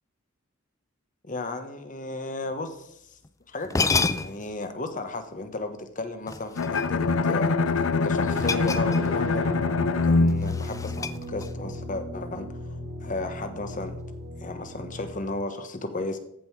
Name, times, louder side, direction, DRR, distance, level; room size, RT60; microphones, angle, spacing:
voice 1, 1.2-3.2 3.5-7.5 8.0-9.5 9.8-14.0 14.4-16.2, left 2 dB, 40° left, 8 dB, 1.2 m, -34 dB
sound 1, 3.2-3.3 3.6-4.5 6.3-7.2 8.3-9.3 9.6-9.8 10.3-11.7, left 4 dB, 15° left, 0.4 m, -29 dB
Bowed string instrument, 6.6-11.6, left 3 dB, 70° left, 0.6 m, -24 dB
sound 2, 8.3-15.1, equal, 70° right, 2.2 m, -37 dB
14.5 x 5.4 x 4.7 m, 0.76 s
head